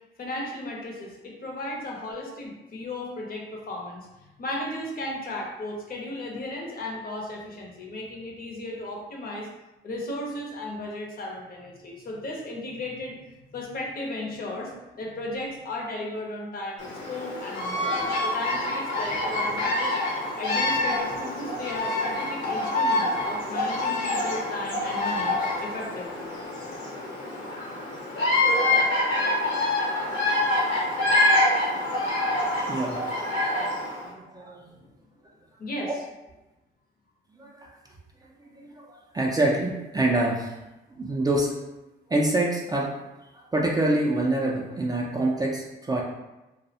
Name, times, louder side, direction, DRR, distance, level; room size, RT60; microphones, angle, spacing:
voice 1, 0.2-9.5 9.8-20.0 20.3-26.3 34.8-34.9 35.6-36.0 40.9-41.0, left 1 dB, 50° left, -1 dB, 0.6 m, -35 dB
Bird vocalization bird call bird song, 16.8-34.0, left 2 dB, 85° left, 0.9 m, -26 dB
voice 2, 32.4-33.7 34.0-34.7 35.8-35.9 37.4-37.7 38.5-40.5 41.0-41.7 42.1-42.9 43.3-46.0, right 1 dB, 20° right, -2 dB, 0.3 m, -26 dB
2.3 x 2.0 x 2.7 m, 1.0 s
cardioid pair, 90°, 20 cm